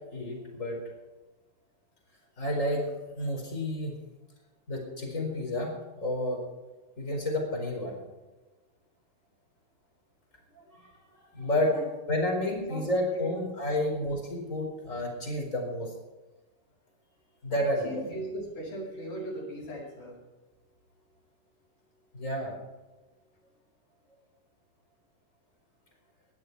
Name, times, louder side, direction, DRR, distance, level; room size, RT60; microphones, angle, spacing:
voice 1, 0.1-0.8 2.4-2.8 3.1-3.9 4.7-5.7 6.0-6.4 7.0-8.0 10.7-10.9 11.3-11.7 12.1-15.9 17.4-18.0 22.1-22.5, left 1 dB, 20° left, 1 dB, 4.6 m, -30 dB
voice 2, 12.5-12.8 13.1-13.3 17.5-20.1, right 1 dB, 60° left, -4 dB, 8.8 m, -39 dB
20.0 x 12.0 x 4.6 m, 1.2 s
omnidirectional pair, 4.1 m